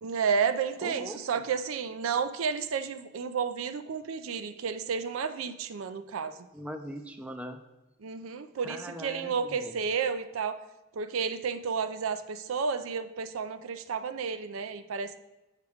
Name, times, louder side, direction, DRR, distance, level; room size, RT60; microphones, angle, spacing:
voice 1, 0.0-6.4 8.0-10.6 10.9-15.2, right 6 dB, 75° right, 10 dB, 0.4 m, -31 dB
voice 2, 0.8-1.2 6.5-7.6 8.6-9.8, equal, 5° right, 6 dB, 0.3 m, -40 dB
6.5 x 4.6 x 3.5 m, 1.0 s
head